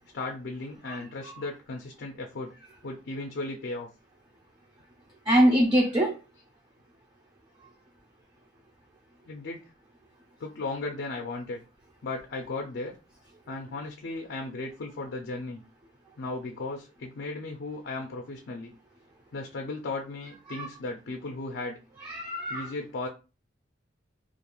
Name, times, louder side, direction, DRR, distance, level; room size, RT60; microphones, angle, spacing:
voice 1, 0.1-2.5 2.8-3.9 9.3-9.7 10.4-11.6 12.0-12.9 13.5-15.6 16.2-18.7 19.3-21.8 22.5-23.1, left 3 dB, 55° left, 0.4 m, -36 dB
voice 2, 5.3-6.2 20.5-20.7 22.0-22.7, equal, 20° right, 0.4 m, -24 dB
2.4 x 2.2 x 2.9 m
head